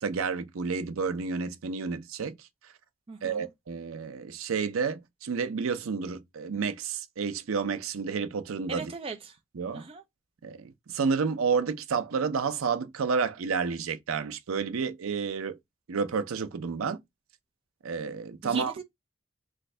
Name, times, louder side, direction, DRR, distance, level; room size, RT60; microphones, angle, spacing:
voice 1, 0.0-2.5 3.2-8.9 9.5-9.9 10.4-15.6 15.9-17.0 17.8-18.7, right 5 dB, 85° right, 0.5 m, -30 dB
voice 2, 3.1-3.5 8.7-9.4 9.7-10.0 18.4-18.8, right 4 dB, 25° right, 0.4 m, -38 dB
3.1 x 2.6 x 3.2 m
head